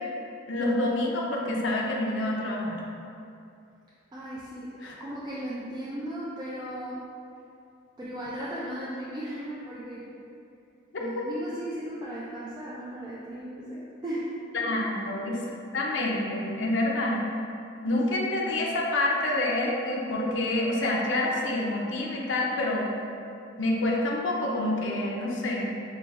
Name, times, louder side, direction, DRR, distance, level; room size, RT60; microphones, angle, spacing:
voice 1, 0.5-2.8 4.8-4.9 11.2-11.3 14.5-15.4 15.7-17.3 17.8-22.9 23.6-25.7, left 1 dB, 70° left, -2 dB, 0.6 m, -27 dB
voice 2, 4.1-7.0 8.0-10.1 11.0-14.8 18.1-18.3, right 1 dB, 20° right, -8 dB, 0.4 m, -36 dB
6.5 x 2.3 x 2.4 m, 2.6 s
head